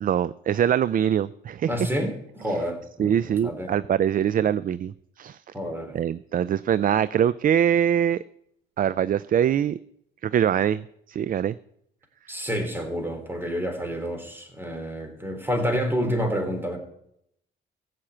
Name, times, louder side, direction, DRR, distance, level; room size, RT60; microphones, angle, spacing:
voice 1, 0.0-1.7 2.5-2.6 3.0-5.4 5.9-8.2 8.8-9.8 10.2-11.6, right 9 dB, 45° right, 17 dB, 0.4 m, -23 dB
voice 2, 1.7-3.7 5.5-6.0 12.3-16.8, equal, 10° right, 6 dB, 3.3 m, -29 dB
15.0 x 5.9 x 8.7 m, 0.74 s
cardioid pair, 90°, 20 cm